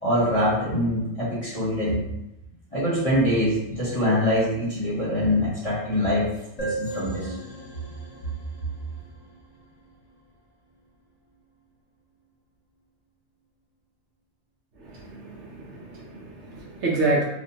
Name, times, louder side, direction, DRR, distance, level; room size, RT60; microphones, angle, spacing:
voice 1, 0.0-2.0 2.7-6.3 6.6-7.3, equal, 30° left, -9 dB, 0.8 m, -24 dB
sound 1, 6.6-10.1, right 3 dB, 55° left, 0.4 m, -37 dB
voice 2, 14.8-17.2, right 2 dB, 70° right, -3 dB, 0.8 m, -28 dB
2.6 x 2.1 x 2.7 m, 0.89 s
omnidirectional pair, 1.3 m